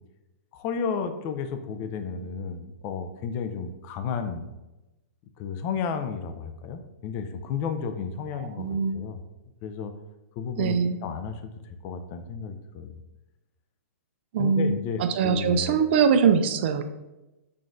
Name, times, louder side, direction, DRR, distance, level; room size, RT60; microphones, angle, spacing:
voice 1, 0.5-4.5 5.4-8.7 8.9-9.2 9.6-9.9 10.4-11.5 11.8-13.0 14.4-15.8, left 6 dB, 30° left, 8 dB, 0.4 m, -32 dB
voice 2, 8.4-9.0 10.6-11.0 14.3-16.9, right 6 dB, 50° right, 9 dB, 0.3 m, -23 dB
5.8 x 2.5 x 2.5 m, 1.0 s
hypercardioid pair, 135°, 8 cm